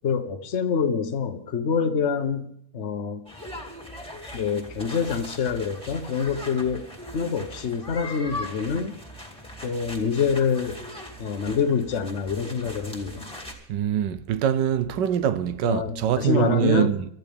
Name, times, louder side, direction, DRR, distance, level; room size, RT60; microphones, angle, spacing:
voice 1, 0.0-3.3 4.3-6.8 7.1-8.9 9.6-10.8 11.2-13.3 15.6-16.9, left 6 dB, 45° left, 1.1 m, -26 dB
sound 1, 3.3-13.5, left 1 dB, 5° left, 2.2 m, -40 dB
voice 2, 13.7-17.1, right 10 dB, 80° right, 1.4 m, -24 dB
24.0 x 13.5 x 3.5 m
omnidirectional pair, 1.9 m